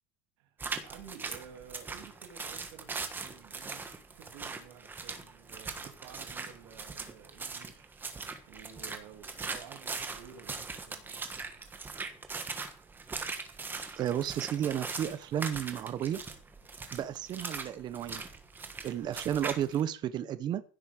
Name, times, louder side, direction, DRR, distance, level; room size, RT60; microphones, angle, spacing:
voice 1, 0.4-8.2 8.5-11.2, right 8 dB, 75° right, 3 dB, 2.3 m, -52 dB
sound 1, 0.6-19.8, right 4 dB, 15° right, 1.5 m, -40 dB
voice 2, 14.0-16.2 16.9-18.2 18.8-20.6, right 10 dB, 30° right, 13 dB, 0.8 m, -32 dB
15.5 x 8.2 x 4.9 m, 0.39 s
cardioid pair, 165°, 14 cm